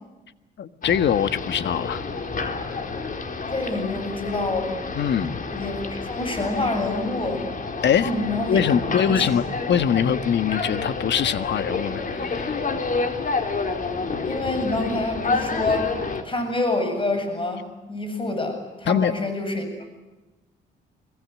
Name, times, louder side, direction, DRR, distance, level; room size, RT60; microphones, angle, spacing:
voice 1, 0.6-2.0 4.9-5.4 7.8-8.1 8.5-9.4 9.7-12.6 18.9-19.1, left 8 dB, 60° left, 12 dB, 1.6 m, -22 dB
sound 1, 0.8-16.2, left 4 dB, 40° left, 3.8 m, -29 dB
voice 2, 3.5-4.8 5.5-7.5 8.0-8.6 9.0-9.3 14.2-15.9 16.2-19.7, left 2 dB, 25° left, 6 dB, 7.7 m, -27 dB
25.0 x 22.5 x 9.5 m, 1.1 s
cardioid pair, 90°, 20 cm